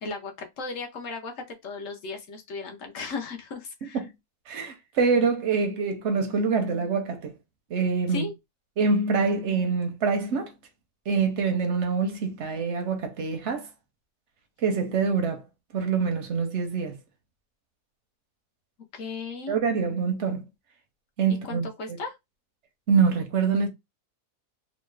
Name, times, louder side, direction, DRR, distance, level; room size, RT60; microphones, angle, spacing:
voice 1, 0.0-4.0 8.1-8.3 18.9-19.5 21.4-22.2, left 4 dB, 65° left, 0.9 m, -36 dB
voice 2, 3.8-4.1 4.5-7.4 7.7-8.3 8.8-10.5 11.1-13.7 14.6-15.4 15.7-17.0 19.5-20.4 21.2-21.7 22.9-23.7, right 5 dB, 65° right, 0.7 m, -25 dB
3.0 x 2.1 x 3.1 m
omnidirectional pair, 1.6 m